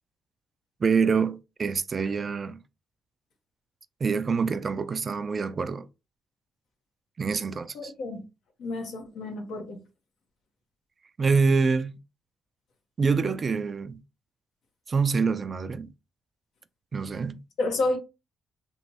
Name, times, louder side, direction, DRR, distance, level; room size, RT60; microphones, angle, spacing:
voice 1, 0.8-2.6 4.0-5.9 7.2-7.9 11.2-12.0 13.0-14.0 14.9-15.9 16.9-17.4, right 5 dB, 40° right, 0.4 m, -26 dB
voice 2, 7.7-8.3 8.6-9.8 17.6-18.0, left 2 dB, 75° left, 1.1 m, -30 dB
3.1 x 3.0 x 2.8 m
cardioid pair, 90°, 0 cm